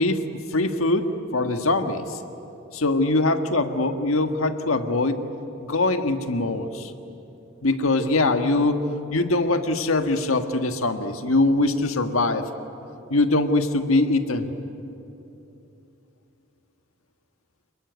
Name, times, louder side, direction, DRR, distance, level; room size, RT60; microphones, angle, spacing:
voice 1, 0.0-2.2 2.7-5.2 5.6-6.9 7.6-12.5 13.1-14.5, left 2 dB, 75° left, 7 dB, 1.6 m, -22 dB
28.0 x 22.0 x 9.4 m, 2.9 s
head